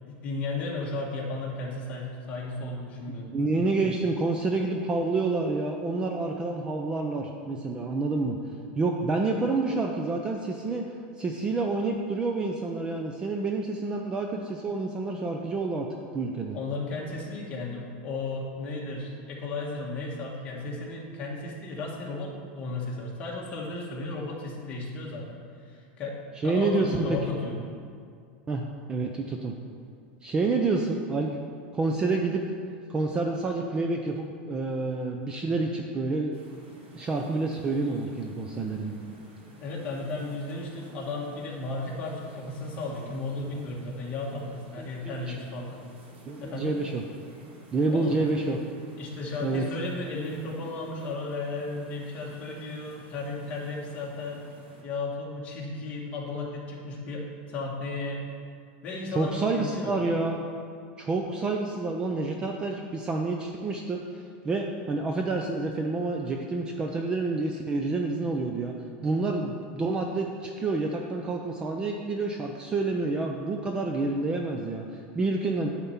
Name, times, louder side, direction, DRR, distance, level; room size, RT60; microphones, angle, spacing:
voice 1, 0.1-3.3 16.5-25.4 25.6-27.6 39.6-45.8 46.4-46.8 47.9-48.1 49.0-54.4 54.8-58.2 58.8-59.9, left 2 dB, 25° left, -3 dB, 1.5 m, -34 dB
voice 2, 3.1-8.4 8.8-10.8 11.2-15.9 16.1-16.6 26.4-27.2 28.5-29.5 30.2-31.3 31.7-32.4 32.9-36.4 36.9-39.0 44.8-45.4 46.3-47.0 47.7-48.6 49.4-49.7 59.1-60.4 61.0-68.7 69.0-75.7, right 3 dB, 15° right, 2 dB, 0.4 m, -28 dB
sound 1, 36.3-54.8, right 1 dB, 70° right, 2.2 m, -52 dB
10.5 x 4.4 x 7.1 m, 2.3 s
supercardioid pair, 175°, 6 cm